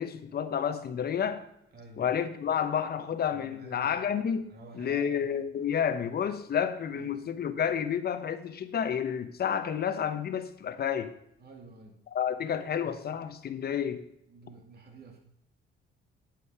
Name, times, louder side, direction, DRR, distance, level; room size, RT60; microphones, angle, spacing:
voice 1, 0.0-1.4 2.0-11.1 12.1-14.0, left 8 dB, 50° left, 10 dB, 1.0 m, -30 dB
voice 2, 1.7-2.1 3.3-4.0 4.5-5.3 6.9-7.2 11.4-12.0 14.3-15.2, right 3 dB, 55° right, 2 dB, 2.5 m, -50 dB
8.7 x 7.8 x 4.8 m, 0.78 s
cardioid pair, 90°, 20 cm